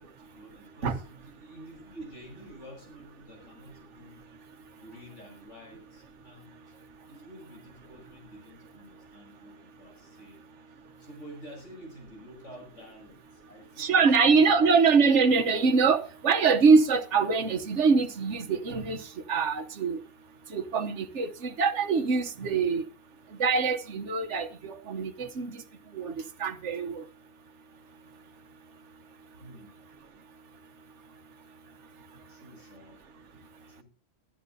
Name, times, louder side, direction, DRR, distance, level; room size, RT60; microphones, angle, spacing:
voice 1, 0.0-4.2 4.8-6.7 7.1-10.4 10.7-14.6 28.2-28.3 29.4-29.7 32.3-33.0 33.7-33.8, equal, 75° left, 7.7 m, -49 dB
voice 2, 13.8-19.0 19.3-20.0 20.5-22.8 23.4-25.6 25.9-26.1 26.4-27.0, right 5 dB, 70° right, 1.3 m, -24 dB
22.5 x 11.5 x 2.7 m
omnidirectional pair, 1.3 m